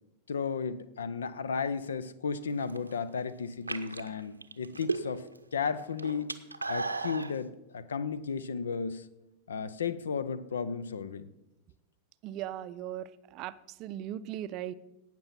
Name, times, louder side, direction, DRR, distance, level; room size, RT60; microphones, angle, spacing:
voice 1, 0.3-5.2 5.5-6.3 6.7-9.0 9.5-11.3, left 5 dB, 70° left, 16 dB, 0.6 m, -34 dB
sound 1, 2.5-3.0 3.5-5.4 5.7-7.3, right 3 dB, 85° right, 0.7 m, -35 dB
voice 2, 12.2-13.5 13.8-14.7, right 12 dB, 40° right, 14 dB, 0.5 m, -38 dB
17.5 x 6.0 x 5.8 m, 0.94 s
figure-of-eight pair, 90°, 0 cm